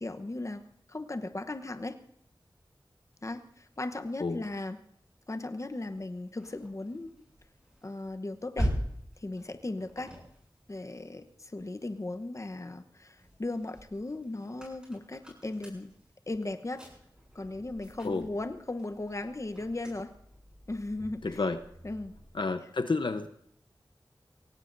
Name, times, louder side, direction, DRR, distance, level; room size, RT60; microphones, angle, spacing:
voice 1, 0.0-2.0 3.2-4.8 5.3-7.3 7.8-8.7 9.2-10.2 10.7-15.9 16.3-16.9 17.3-20.1 20.7-21.4 21.8-22.1, left 2 dB, 40° left, 7 dB, 1.0 m, -37 dB
sound 1, 5.7-12.2 12.7-22.5, equal, 10° right, 7.3 m, -42 dB
voice 2, 21.2-21.6 22.3-23.3, left 3 dB, 70° left, 8 dB, 0.8 m, -30 dB
24.5 x 18.0 x 2.7 m, 0.68 s
wide cardioid pair, 65°, 8 cm